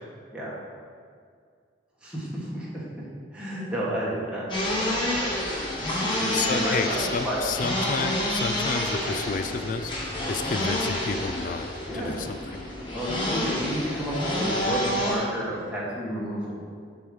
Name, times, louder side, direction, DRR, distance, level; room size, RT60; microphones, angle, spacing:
voice 1, 2.0-2.8 3.3-4.9 5.2-5.3 5.8-7.4 11.9-12.2 12.9-16.6, equal, 5° right, -7 dB, 1.4 m, -31 dB
sound 1, 4.5-15.2, left 1 dB, 25° left, 1.4 m, -28 dB
voice 2, 6.3-11.7 11.9-12.6, left 4 dB, 45° left, 9 dB, 0.4 m, -31 dB
7.7 x 3.5 x 6.4 m, 2.1 s
head